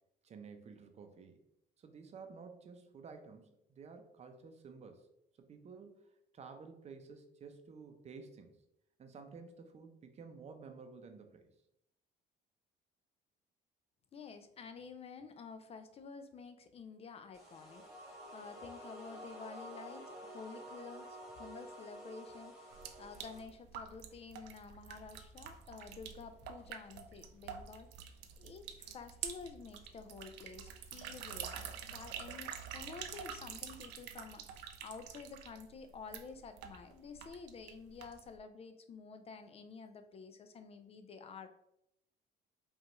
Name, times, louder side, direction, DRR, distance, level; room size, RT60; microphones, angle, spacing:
voice 1, 0.2-1.4 1.8-5.1 5.4-8.6 9.0-11.5, right 5 dB, 40° right, 6 dB, 0.6 m, -52 dB
voice 2, 14.1-41.5, left 5 dB, 35° left, 9 dB, 0.4 m, -50 dB
sound 1, 17.3-23.4, right 1 dB, 5° right, 1.3 m, -50 dB
sound 2, 22.7-38.4, right 8 dB, 85° right, 0.5 m, -47 dB
5.1 x 2.4 x 3.0 m, 0.78 s
cardioid pair, 110°, 17 cm